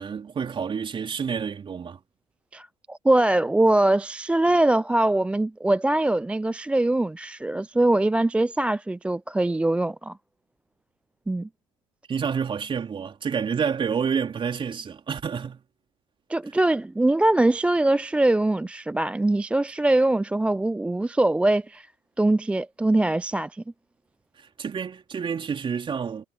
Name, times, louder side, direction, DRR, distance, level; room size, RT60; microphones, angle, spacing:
voice 1, 0.0-2.0 12.1-15.6 24.4-26.2, right 6 dB, 30° right, 3.6 m, -29 dB
voice 2, 2.5-10.1 11.3-11.5 16.3-21.9 22.2-23.6, right 2 dB, 5° right, 0.4 m, -22 dB
hypercardioid pair, 70°, 16 cm